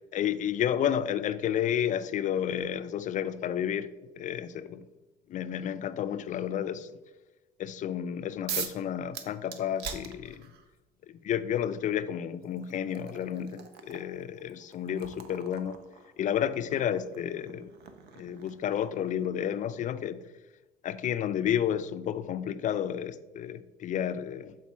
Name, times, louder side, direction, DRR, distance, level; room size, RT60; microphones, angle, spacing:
voice 1, 0.1-4.9 5.3-7.0 7.6-10.5 11.1-15.8 16.2-17.7 18.2-20.3 20.8-24.6, left 9 dB, 50° left, 0.4 m, -31 dB
sound 1, 8.5-8.8 9.1-10.7 11.8-11.9 12.4-19.1, right 7 dB, 75° right, 0.7 m, -42 dB
7.2 x 3.9 x 4.3 m
cardioid pair, 110°, 17 cm